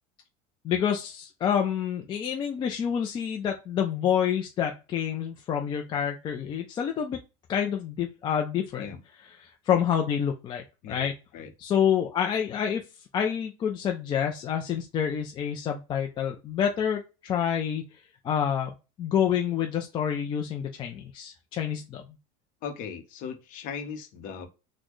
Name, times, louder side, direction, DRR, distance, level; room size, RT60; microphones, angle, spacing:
voice 1, 0.6-7.2 7.5-8.9 9.4-11.1 11.6-12.8 13.1-17.8 18.2-22.0, left 8 dB, 25° left, 2 dB, 0.4 m, -28 dB
voice 2, 22.6-24.5, left 6 dB, 45° left, 5 dB, 0.9 m, -38 dB
4.0 x 2.1 x 3.1 m, 0.29 s
supercardioid pair, 150°, 19 cm